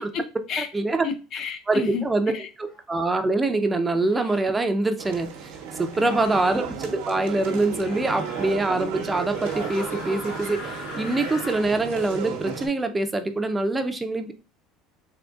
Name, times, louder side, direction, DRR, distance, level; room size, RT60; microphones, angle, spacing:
voice 1, 0.0-0.7 1.0-2.0 2.3-2.5 5.9-6.2, left 6 dB, 55° left, 7 dB, 0.6 m, -31 dB
voice 2, 0.6-1.1 1.7-5.3 5.8-14.3, right 2 dB, 20° right, 8 dB, 0.5 m, -24 dB
sound 1, 2.6-2.8 4.0-4.5 5.9-6.6 7.8-8.5 9.3-11.7, left 3 dB, 75° left, 1.9 m, -40 dB
sound 2, 5.0-12.7, right 6 dB, 85° right, 0.9 m, -34 dB
3.8 x 3.3 x 2.3 m, 0.32 s
supercardioid pair, 95°, 0 cm